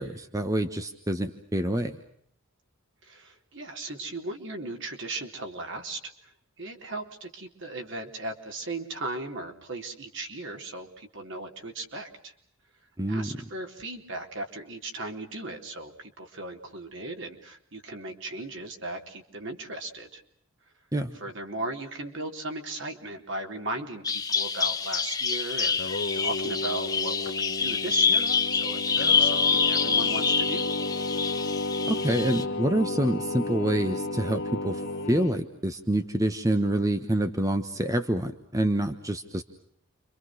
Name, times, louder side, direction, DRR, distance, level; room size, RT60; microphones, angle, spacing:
voice 1, 0.0-2.0 13.0-13.3 20.9-21.1 31.9-34.8 35.1-39.4, right 1 dB, 15° right, 7 dB, 1.2 m, -27 dB
voice 2, 3.0-6.3 6.6-12.3 13.1-20.2 21.1-28.2 28.5-30.7, right 2 dB, 55° right, 4 dB, 3.8 m, -37 dB
Bird vocalization bird call bird song, 24.0-32.4, left 5 dB, 15° left, 1.8 m, -26 dB
Singing, 25.6-35.3, left 2 dB, 55° left, 1.5 m, -32 dB
30.0 x 25.5 x 6.3 m, 0.69 s
head